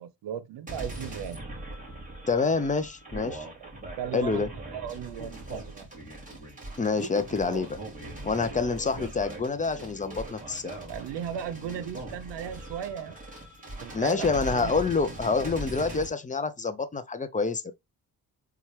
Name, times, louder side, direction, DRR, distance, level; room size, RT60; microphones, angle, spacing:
voice 1, 0.0-1.4 3.6-3.7 4.0-5.9 10.9-13.2 13.8-14.7, right 9 dB, 80° right, 0.7 m, -37 dB
sound 1, 0.7-16.1, right 2 dB, 20° right, 2.5 m, -40 dB
voice 2, 2.3-3.5 4.1-4.5 6.8-7.8 8.2-10.7 13.9-17.7, left 4 dB, 20° left, 0.5 m, -27 dB
4.3 x 2.4 x 3.1 m
cardioid pair, 85°, 42 cm